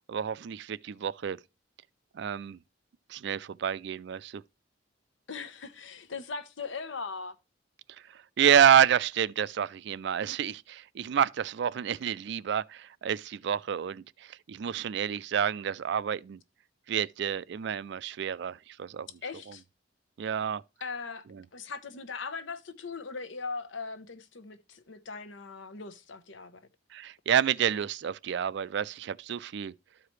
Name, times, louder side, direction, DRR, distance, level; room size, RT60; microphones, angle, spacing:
voice 1, 0.1-1.4 2.1-2.6 3.1-4.4 8.4-16.4 16.9-19.1 20.2-20.6 26.9-29.7, right 8 dB, 65° right, 0.4 m, -28 dB
voice 2, 5.3-7.4 19.2-19.6 20.8-21.3 21.5-26.6, left 4 dB, 80° left, 1.0 m, -39 dB
13.0 x 4.8 x 3.2 m
head